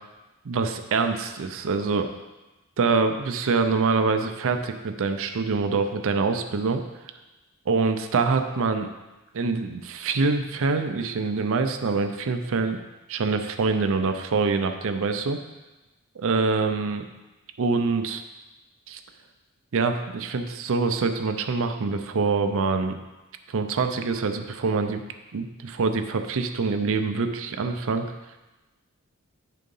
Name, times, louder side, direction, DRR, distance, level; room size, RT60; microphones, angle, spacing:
voice 1, 0.4-2.1 2.8-6.8 7.7-8.9 9.3-12.8 13.1-15.4 16.2-17.1 17.6-18.2 18.9-19.0 19.7-23.0 23.5-25.0 25.3-28.0, right 4 dB, 65° right, 7 dB, 0.5 m, -25 dB
9.2 x 3.8 x 5.4 m, 1.1 s
head